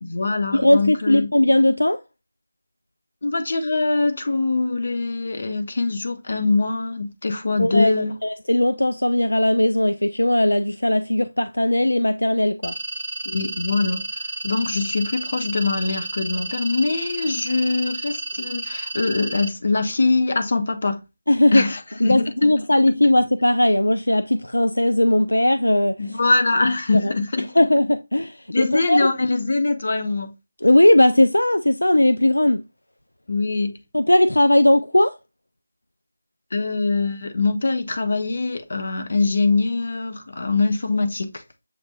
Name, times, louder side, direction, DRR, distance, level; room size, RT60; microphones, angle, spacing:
voice 1, 0.0-1.3 3.2-8.1 13.2-21.0 21.5-22.5 26.0-27.5 28.5-30.3 33.3-33.8 36.5-41.4, left 3 dB, 50° left, 0.8 m, -23 dB
voice 2, 0.5-2.0 7.6-12.7 21.3-21.6 22.0-26.2 26.9-27.1 27.6-29.1 30.6-32.6 33.9-35.1, left 1 dB, 75° left, 0.3 m, -18 dB
sound 1, 12.6-19.5, right 2 dB, 65° right, 0.7 m, -31 dB
7.5 x 2.5 x 2.3 m
figure-of-eight pair, 160°, 0 cm